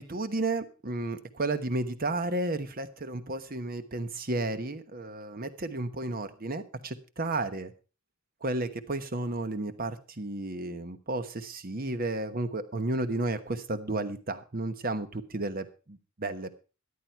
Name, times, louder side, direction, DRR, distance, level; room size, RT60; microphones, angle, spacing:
voice 1, 0.0-7.7 8.4-16.5, right 2 dB, 45° right, 11 dB, 1.2 m, -32 dB
14.0 x 10.5 x 4.6 m, 0.33 s
head